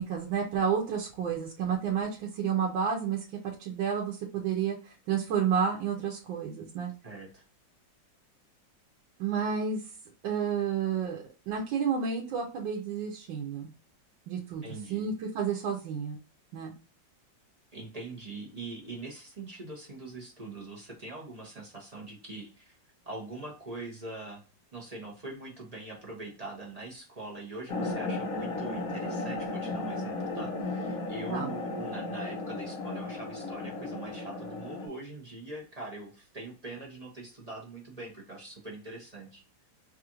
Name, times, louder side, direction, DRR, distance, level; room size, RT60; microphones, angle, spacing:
voice 1, 0.0-3.2 3.6-6.9 9.2-9.8 10.2-13.7 14.3-14.6 14.9-16.2 16.5-16.7 31.3-31.5, right 7 dB, 85° right, 0 dB, 1.4 m, -30 dB
voice 2, 7.0-7.4 14.6-15.1 17.7-22.8 23.0-24.4 24.7-39.4, right 2 dB, 35° right, -2 dB, 0.6 m, -43 dB
sound 1, 27.7-34.9, left 2 dB, 55° left, 1.1 m, -35 dB
4.8 x 2.4 x 2.9 m, 0.35 s
omnidirectional pair, 2.0 m